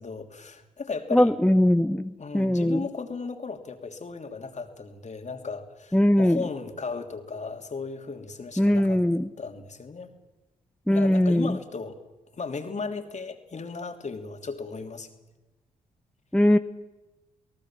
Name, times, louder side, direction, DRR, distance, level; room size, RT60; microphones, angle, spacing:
voice 1, 0.0-1.3 2.2-9.0 9.4-10.1 10.9-12.0 12.3-15.1, left 4 dB, 45° left, 5 dB, 3.1 m, -36 dB
voice 2, 1.1-2.8 5.9-6.4 8.6-9.3 10.9-11.5 16.3-16.6, left 1 dB, 5° left, 9 dB, 0.9 m, -21 dB
30.0 x 18.0 x 7.6 m, 1.1 s
hypercardioid pair, 45°, 17 cm